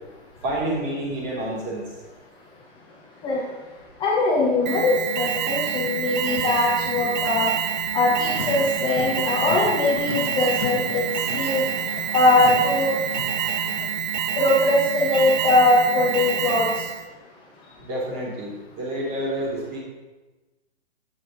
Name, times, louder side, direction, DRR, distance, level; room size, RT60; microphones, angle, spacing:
voice 1, 0.4-1.8 17.8-19.8, right 1 dB, 25° right, -4 dB, 2.8 m, -28 dB
voice 2, 4.0-7.5 7.9-11.0 11.3-11.7 12.1-13.0 14.4-16.7, left 2 dB, 15° left, -4 dB, 0.8 m, -21 dB
Alarm, 4.7-17.1, right 8 dB, 40° right, 0.5 m, -27 dB
Car, 8.2-13.9, left 6 dB, 75° left, 1.1 m, -36 dB
8.4 x 6.9 x 3.7 m, 1.2 s
hypercardioid pair, 145°, 34 cm